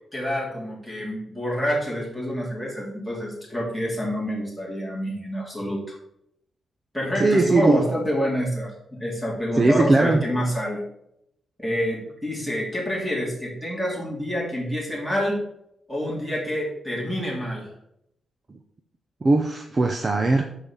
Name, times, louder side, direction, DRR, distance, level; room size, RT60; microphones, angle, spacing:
voice 1, 0.1-6.0 6.9-10.8 11.6-15.4 15.9-17.7, equal, ahead, -4 dB, 3.0 m, -27 dB
voice 2, 7.2-7.8 9.6-10.2 19.2-20.4, right 2 dB, 30° right, 4 dB, 0.6 m, -19 dB
6.5 x 5.3 x 5.6 m, 0.77 s
wide cardioid pair, 145°, 0 cm